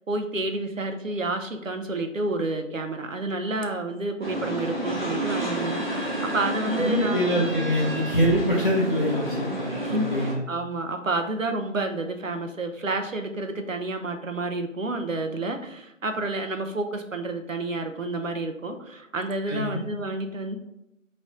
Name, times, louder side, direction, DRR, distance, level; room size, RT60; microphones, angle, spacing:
voice 1, 0.0-7.4 9.4-20.6, right 2 dB, 70° right, 5 dB, 0.8 m, -30 dB
sound 1, 4.2-10.3, right 1 dB, 35° right, 0.9 m, -30 dB
voice 2, 6.8-10.4 19.5-19.8, equal, 40° left, -5 dB, 0.7 m, -25 dB
4.1 x 3.3 x 3.7 m, 0.87 s
figure-of-eight pair, 170°, 40 cm